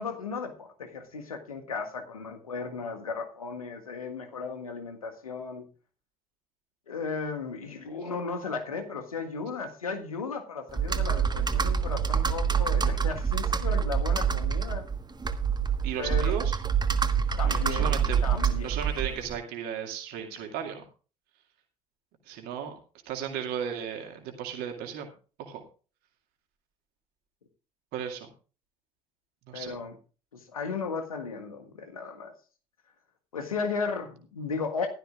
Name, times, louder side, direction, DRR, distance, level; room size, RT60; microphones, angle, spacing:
voice 1, 0.0-5.7 6.9-14.9 16.0-16.4 17.4-17.9 18.2-18.7 29.5-29.9 30.3-32.3 33.3-34.9, left 5 dB, 85° left, 5 dB, 1.5 m, -35 dB
Computer keyboard, 10.7-19.3, right 7 dB, 25° right, 1.4 m, -26 dB
voice 2, 15.8-16.6 17.4-18.2 18.6-20.8 22.3-22.8 23.1-25.1 25.4-25.6 27.9-28.3 29.5-29.7, right 8 dB, 60° right, 4 dB, 2.3 m, -35 dB
15.5 x 12.5 x 2.4 m, 0.36 s
figure-of-eight pair, 50°, 18 cm